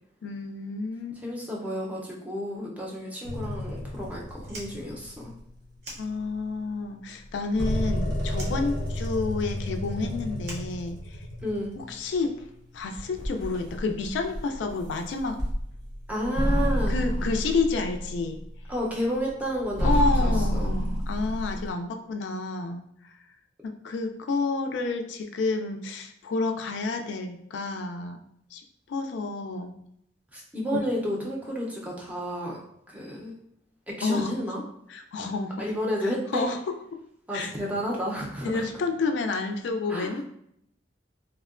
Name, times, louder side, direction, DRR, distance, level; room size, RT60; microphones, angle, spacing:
voice 1, 0.2-1.2 6.0-11.2 11.8-12.5 12.7-15.4 16.9-18.4 19.8-22.8 23.6-28.2 28.5-28.6 28.9-29.9 30.7-30.8 34.0-34.6 34.9-35.6 36.0-36.6 37.3-37.5 38.4-40.2, left 3 dB, 75° left, 5 dB, 0.3 m, -30 dB
voice 2, 1.2-5.3 11.4-11.7 16.1-16.9 18.7-19.9 20.2-20.7 30.3-32.6 32.9-33.3 34.0-34.6 35.6-36.5 37.3-38.7 39.9-40.2, equal, 10° right, -3 dB, 0.5 m, -31 dB
sound 1, 3.2-5.4 6.1-6.2 7.3-12.4 12.9-18.8 19.3-21.7, equal, 85° right, 0.9 m, -29 dB
Fire, 4.4-6.7 6.9-7.9 8.3-11.5, right 1 dB, 60° right, 0.7 m, -45 dB
3.5 x 2.1 x 2.4 m, 0.74 s
head